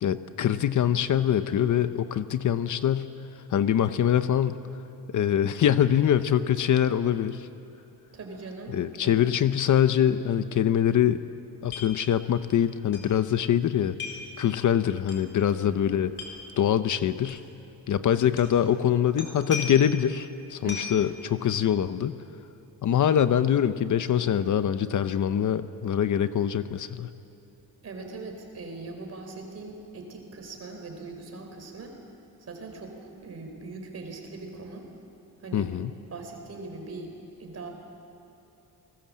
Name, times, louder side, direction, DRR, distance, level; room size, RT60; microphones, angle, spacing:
voice 1, 0.0-3.1 3.5-4.6 5.1-7.5 8.7-11.2 11.6-14.0 14.4-16.1 16.6-17.4 17.9-22.2 22.8-27.1 35.5-35.9, left 9 dB, 55° left, 12 dB, 0.8 m, -24 dB
voice 2, 8.1-9.2 15.5-15.8 20.6-21.0 27.8-32.0 32.4-34.9 35.4-35.7 36.1-37.1 37.4-37.7, right 3 dB, 45° right, 3 dB, 4.0 m, -41 dB
sound 1, 11.7-11.9 12.2-12.3 12.9-13.1 14.0-14.3 15.1-15.2 16.1-16.3 17.3-17.4 18.3-18.6 19.2-20.0 20.7-21.0, left 5 dB, 30° left, 4.0 m, -36 dB
29.0 x 20.0 x 7.5 m, 2.9 s
wide cardioid pair, 180°, 36 cm